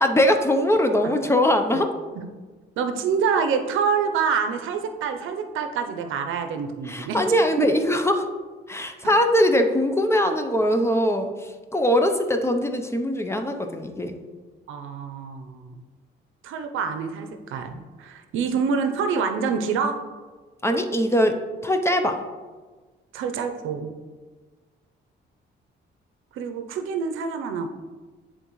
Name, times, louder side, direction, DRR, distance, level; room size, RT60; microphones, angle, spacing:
voice 1, 0.0-1.9 6.9-8.3 8.7-14.2 20.6-22.2, equal, 15° left, 5 dB, 0.6 m, -21 dB
voice 2, 2.8-7.2 7.6-7.7 14.7-15.7 16.4-20.0 23.1-23.9 26.3-27.7, right 6 dB, 85° right, 7 dB, 0.6 m, -26 dB
10.5 x 3.8 x 3.1 m, 1.4 s
cardioid pair, 90°, 20 cm